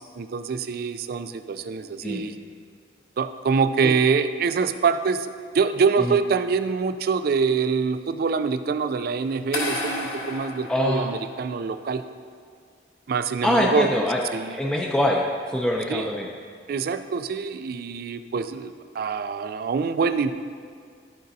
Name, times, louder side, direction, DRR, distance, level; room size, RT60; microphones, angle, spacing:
voice 1, 0.0-2.3 3.2-12.0 13.1-13.9 14.3-14.6 15.9-16.1 16.7-20.3, right 5 dB, 55° right, 10 dB, 0.3 m, -25 dB
sound 1, 9.5-11.6, left 2 dB, 60° left, 1.3 m, -32 dB
voice 2, 10.7-11.1 13.4-14.2 14.5-16.3, left 1 dB, 5° left, -1 dB, 0.4 m, -24 dB
12.5 x 5.1 x 2.7 m, 2.1 s
head